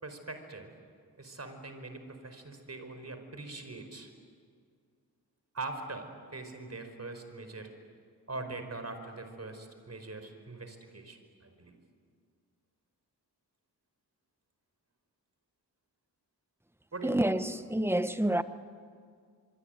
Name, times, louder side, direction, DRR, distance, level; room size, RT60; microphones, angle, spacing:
voice 1, 0.0-0.7 1.2-4.1 5.5-7.7 8.3-11.8 16.9-17.2, right 3 dB, 40° right, 4.9 m, -42 dB
voice 2, 17.0-18.4, right 1 dB, 5° right, 1.2 m, -28 dB
25.5 x 23.5 x 9.2 m
cardioid pair, 55°, 40 cm